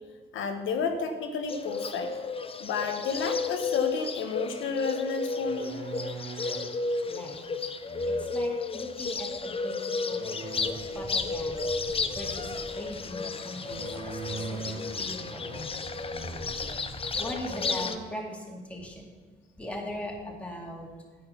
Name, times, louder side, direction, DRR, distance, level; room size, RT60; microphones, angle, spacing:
voice 1, 0.3-2.1 2.6-5.8, left 5 dB, 80° left, 5 dB, 1.1 m, -31 dB
Bird, 1.5-18.0, left 4 dB, 30° left, 0.6 m, -33 dB
sound 1, 5.4-6.7 7.9-8.6 10.1-10.7 13.6-15.0 15.4-16.5 17.1-17.2 17.6-18.3, right 3 dB, 75° right, 2.4 m, -41 dB
voice 2, 7.1-7.4 8.1-9.7 10.1-10.2 10.9-11.6 12.1-15.8 17.2-19.1 19.6-20.9, left 1 dB, 5° left, -1 dB, 2.4 m, -40 dB
sound 2, 10.3-17.9, right 1 dB, 20° right, 1.2 m, -46 dB
9.4 x 7.9 x 5.8 m, 1.4 s
cardioid pair, 90°, 20 cm